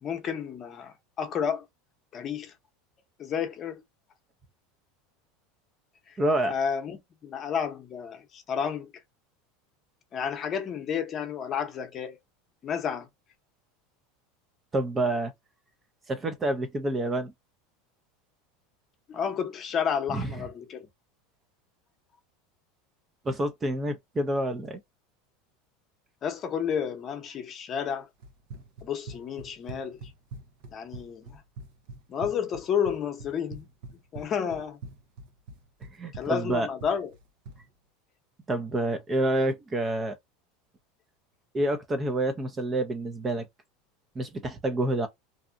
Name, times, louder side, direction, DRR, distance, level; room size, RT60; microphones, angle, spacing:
voice 1, 0.0-1.6 2.1-2.5 3.2-3.8 6.1-6.2 6.5-8.9 10.1-12.2 12.6-13.1 19.1-20.9 26.2-28.1 28.8-30.1 30.7-31.4 32.1-33.7 34.1-34.8 36.1-37.1, left 7 dB, 35° left, 0.8 m, -31 dB
voice 2, 6.2-6.5 14.7-15.3 16.1-17.3 20.1-20.3 23.2-24.8 36.0-36.7 38.5-40.2 41.5-43.5 44.2-45.1, right 1 dB, 20° right, 0.6 m, -28 dB
Run, 28.2-37.7, right 2 dB, 70° right, 0.8 m, -44 dB
2.7 x 2.3 x 2.5 m
supercardioid pair, 120°, 0 cm